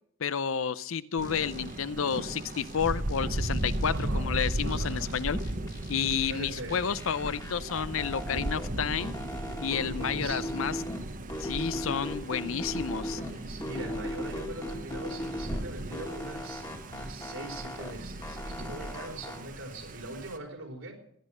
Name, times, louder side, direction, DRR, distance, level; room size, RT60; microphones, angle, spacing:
voice 1, 0.2-5.4 5.9-9.1 9.6-10.8 11.4-13.2, left 7 dB, 75° left, 17 dB, 0.6 m, -31 dB
sound 1, 1.2-1.7 2.1-4.1 4.4-6.4 6.7-8.7 9.0-11.0 11.3-13.3 13.6-15.6 15.9-17.9 18.2-19.4, left 1 dB, 15° left, 2.1 m, -39 dB
Thunder, 1.2-20.4, right 1 dB, 40° right, 1.0 m, -36 dB
voice 2, 3.9-5.3 6.3-6.9 9.7-10.6 13.1-21.0, right 2 dB, 80° right, 3 dB, 3.8 m, -42 dB
17.5 x 10.5 x 6.2 m, 0.72 s
head